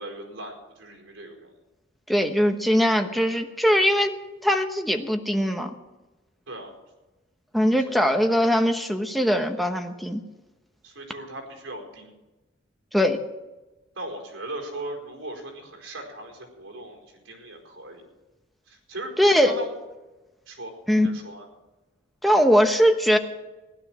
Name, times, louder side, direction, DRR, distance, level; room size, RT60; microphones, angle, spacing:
voice 1, 0.0-1.5 6.5-6.7 7.8-8.1 10.8-12.1 13.9-18.1 18.7-19.2 19.4-19.8 20.5-21.4, right 1 dB, 75° right, 1 dB, 4.7 m, -38 dB
voice 2, 2.1-4.2 4.4-5.7 7.5-10.2 12.9-13.2 19.2-19.6 20.9-21.1 22.2-23.2, equal, ahead, 4 dB, 1.0 m, -21 dB
16.0 x 11.5 x 6.2 m, 1.1 s
head